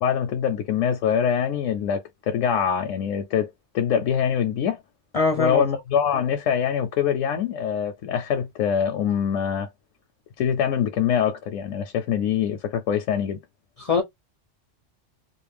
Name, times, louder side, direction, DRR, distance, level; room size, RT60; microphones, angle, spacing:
voice 1, 0.0-3.5 3.7-4.8 5.4-9.7 10.4-13.4, left 8 dB, 85° left, 0.9 m, -24 dB
voice 2, 5.1-5.6 13.8-14.0, left 4 dB, 55° left, 0.4 m, -22 dB
2.5 x 2.1 x 3.2 m
omnidirectional pair, 1.3 m